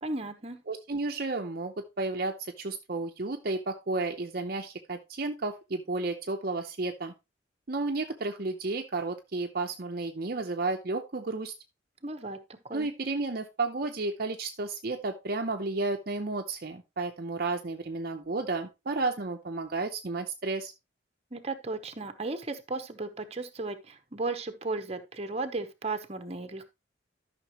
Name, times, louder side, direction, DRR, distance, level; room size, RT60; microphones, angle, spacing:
voice 1, 0.0-0.6 12.0-12.4 12.7-12.9 21.3-26.6, right 3 dB, 35° right, 1.0 m, -35 dB
voice 2, 0.7-7.1 7.7-11.5 12.7-20.7, right 3 dB, 50° right, 0.7 m, -32 dB
12.5 x 5.9 x 3.0 m
head